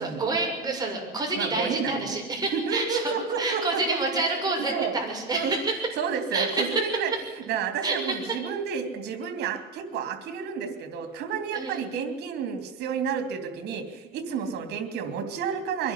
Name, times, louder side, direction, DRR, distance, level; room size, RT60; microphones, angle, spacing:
voice 1, 0.0-3.1 3.4-5.7 6.3-6.8 7.8-8.2 11.5-11.9 14.4-14.6, right 2 dB, 25° right, 0 dB, 6.8 m, -28 dB
voice 2, 1.4-2.2 2.5-4.4 4.7-5.0 5.3-5.6 6.0-7.1 7.5-15.9, right 6 dB, 80° right, 8 dB, 3.1 m, -31 dB
23.5 x 11.0 x 10.0 m, 1.2 s
cardioid pair, 110°, 17 cm